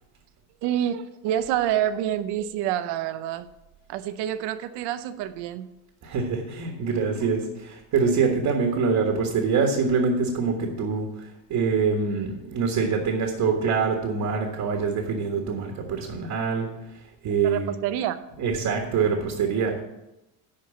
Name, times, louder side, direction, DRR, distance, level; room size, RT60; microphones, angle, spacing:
voice 1, 0.6-3.5 3.9-5.7 17.4-18.2, right 11 dB, 90° right, 12 dB, 0.8 m, -27 dB
voice 2, 6.0-17.7 18.4-19.8, right 5 dB, 50° right, 2 dB, 1.6 m, -25 dB
11.0 x 4.7 x 7.1 m, 0.93 s
cardioid pair, 155°, 39 cm